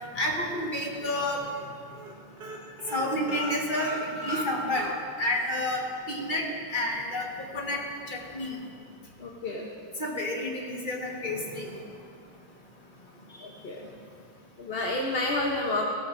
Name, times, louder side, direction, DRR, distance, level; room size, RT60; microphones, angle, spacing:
voice 1, 0.1-1.4 2.9-4.9 5.2-5.8 6.1-7.3 7.5-8.6 10.0-11.7, left 1 dB, 25° left, -1 dB, 1.5 m, -30 dB
sound 1, 0.5-1.1 1.5-1.7 1.9-2.1 2.4-5.4 5.7-5.8 6.2-6.3, equal, 50° right, 2.0 m, -37 dB
voice 2, 9.2-9.7 13.3-13.9 14.6-15.8, left 2 dB, 45° left, -1 dB, 0.7 m, -30 dB
17.0 x 16.5 x 2.7 m, 2.2 s
omnidirectional pair, 2.3 m